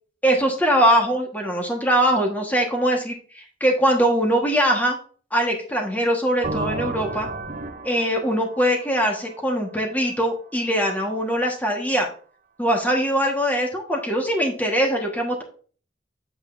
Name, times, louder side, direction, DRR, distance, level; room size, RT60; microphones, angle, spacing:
voice 1, 0.2-5.0 5.3-7.3 7.8-12.1 12.6-15.4, equal, 10° left, 1 dB, 1.6 m, -22 dB
sound 1, 6.4-10.2, right 2 dB, 45° right, 0.7 m, -33 dB
8.2 x 7.8 x 2.7 m, 0.42 s
head